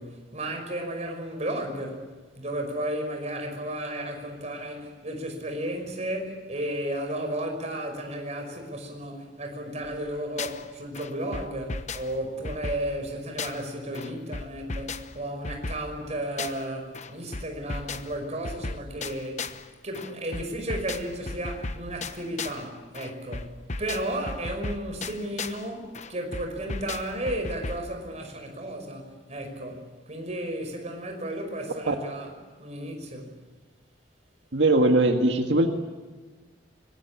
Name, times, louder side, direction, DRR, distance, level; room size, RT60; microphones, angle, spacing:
voice 1, 0.0-2.1 2.4-19.6 19.8-32.3 32.6-33.4, right 1 dB, 40° right, 5.5 m, -33 dB
sound 1, 9.8-10.7 10.9-13.7 13.9-16.7 16.9-19.7 19.9-22.7 22.9-25.7 25.9-27.9, left 3 dB, 40° left, 1.0 m, -36 dB
voice 2, 34.5-35.7, right 2 dB, 85° right, 1.8 m, -20 dB
25.0 x 21.5 x 8.5 m
head